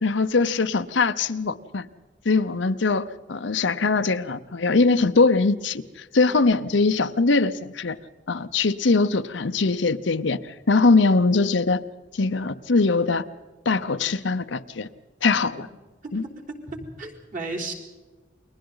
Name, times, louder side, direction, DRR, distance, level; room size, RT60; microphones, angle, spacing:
voice 1, 0.0-1.9 2.2-5.8 6.1-8.0 8.3-11.8 12.1-13.2 13.7-14.9 15.2-15.7 16.1-16.2, left 3 dB, 80° left, 10 dB, 0.8 m, -21 dB
voice 2, 16.0-16.4 16.7-17.7, right 2 dB, 45° right, 0 dB, 3.9 m, -35 dB
30.0 x 22.5 x 4.0 m, 1.3 s
head